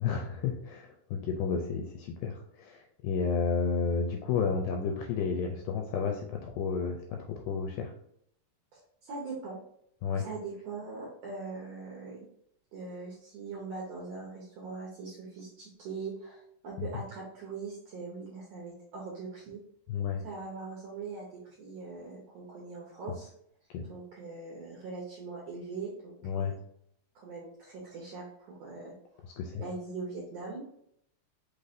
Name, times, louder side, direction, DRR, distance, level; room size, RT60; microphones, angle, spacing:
voice 1, 0.0-7.9 10.0-10.3 16.8-16.9 19.9-20.2 23.7-23.8 26.2-26.5 29.4-29.5, left 5 dB, 85° left, 3 dB, 1.9 m, -31 dB
voice 2, 8.7-9.6 10.1-12.3 12.7-19.6 20.2-23.3 23.9-26.5 27.1-29.2 29.6-30.7, right 4 dB, 70° right, -4 dB, 1.6 m, -41 dB
5.7 x 3.2 x 2.6 m, 0.71 s
omnidirectional pair, 4.1 m